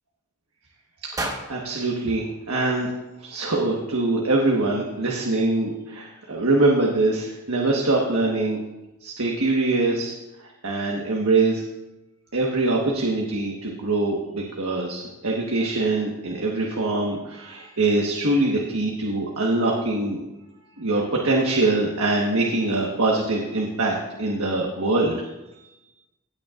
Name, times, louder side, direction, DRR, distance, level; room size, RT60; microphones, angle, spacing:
voice 1, 1.0-2.9 3.2-8.6 9.0-10.1 10.6-11.6 12.3-20.2 20.8-25.2, right 2 dB, 85° right, -1 dB, 1.4 m, -23 dB
sound 1, 1.1-3.3, right 1 dB, 15° right, 1.3 m, -35 dB
16.5 x 9.2 x 2.5 m, 1.0 s
head